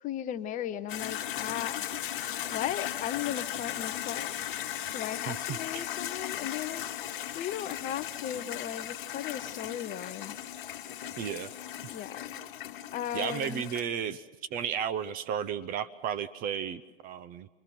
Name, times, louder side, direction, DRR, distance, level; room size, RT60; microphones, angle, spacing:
voice 1, 0.0-1.8 2.5-4.3 4.9-10.3 11.9-12.2 12.9-13.7, left 10 dB, 25° left, 12 dB, 0.7 m, -36 dB
sound 1, 0.9-13.8, left 11 dB, 55° left, 1.6 m, -37 dB
voice 2, 5.3-5.6 11.2-11.5 13.1-14.2 14.5-17.5, right 8 dB, 30° right, 15 dB, 0.7 m, -33 dB
29.0 x 22.5 x 5.9 m, 1.2 s
figure-of-eight pair, 100°, 30 cm